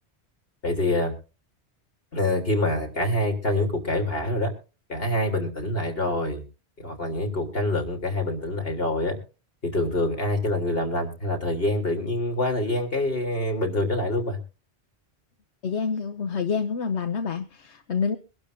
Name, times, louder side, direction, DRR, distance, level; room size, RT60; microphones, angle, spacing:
voice 1, 0.6-1.1 2.1-4.5 4.9-6.4 6.8-9.2 9.6-14.4, left 1 dB, 60° left, 3 dB, 3.9 m, -26 dB
voice 2, 15.6-18.2, left 5 dB, 85° left, 6 dB, 1.2 m, -27 dB
24.0 x 12.0 x 2.7 m, 0.33 s
omnidirectional pair, 1.1 m